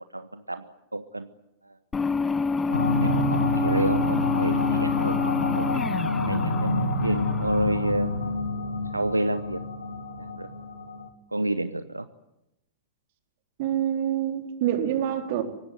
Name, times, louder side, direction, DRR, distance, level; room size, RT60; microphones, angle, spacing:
voice 1, 0.1-1.3 1.6-1.7 2.7-5.7 6.2-6.7 7.0-8.1 8.9-9.6 10.2-10.5 11.3-12.1, right 2 dB, 90° right, 0.9 m, -30 dB
sound 1, 1.9-8.3, left 4 dB, 15° left, 1.0 m, -28 dB
sound 2, 2.7-11.1, left 2 dB, 75° left, 2.2 m, -28 dB
voice 2, 13.6-15.4, right 10 dB, 50° right, 4.0 m, -26 dB
24.0 x 19.0 x 9.2 m
figure-of-eight pair, 100°, 0 cm